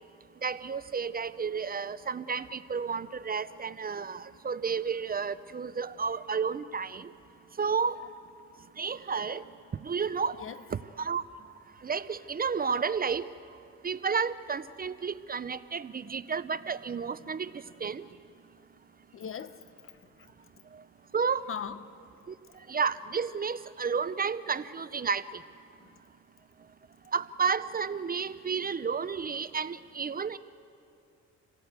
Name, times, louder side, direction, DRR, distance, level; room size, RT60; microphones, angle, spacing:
voice 1, 0.4-7.1 7.6-8.0 8.8-9.4 9.8-10.4 10.7-11.2 11.8-13.3 13.8-18.1 20.7-20.8 21.1-21.5 22.3-22.4 22.7-25.4 27.1-30.4, right 6 dB, 30° right, 0.6 m, -31 dB
voice 2, 19.1-20.3 21.5-21.9 25.8-25.9, left 7 dB, 45° left, 1.0 m, -40 dB
28.0 x 17.5 x 8.1 m
cardioid pair, 90°, 30 cm